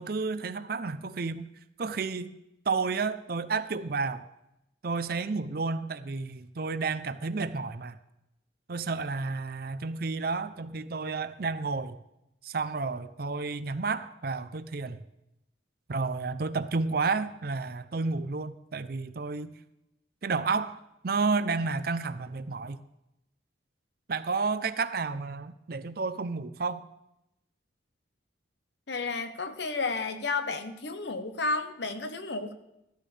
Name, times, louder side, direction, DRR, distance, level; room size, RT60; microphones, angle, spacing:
voice 1, 0.0-1.5 1.8-2.3 2.7-4.2 4.8-8.0 8.7-12.0 12.4-15.0 15.9-19.5 20.2-20.8 21.0-22.8 24.1-26.8, right 4 dB, 50° right, 13 dB, 0.5 m, -31 dB
voice 2, 28.9-32.5, left 3 dB, 65° left, 9 dB, 1.0 m, -32 dB
14.0 x 14.0 x 3.3 m, 0.89 s
head